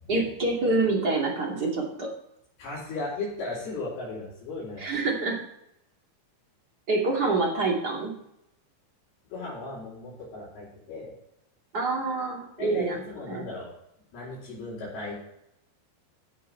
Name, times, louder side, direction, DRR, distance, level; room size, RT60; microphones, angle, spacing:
voice 1, 0.1-2.1 4.8-5.4 6.9-8.1 11.7-13.0 13.3-13.4, right 3 dB, 30° right, -2 dB, 1.9 m, -26 dB
voice 2, 2.6-4.9 9.3-11.1 12.6-13.7 14.1-15.2, left 2 dB, 60° left, -9 dB, 5.9 m, -36 dB
15.5 x 6.0 x 5.7 m, 0.80 s
omnidirectional pair, 5.1 m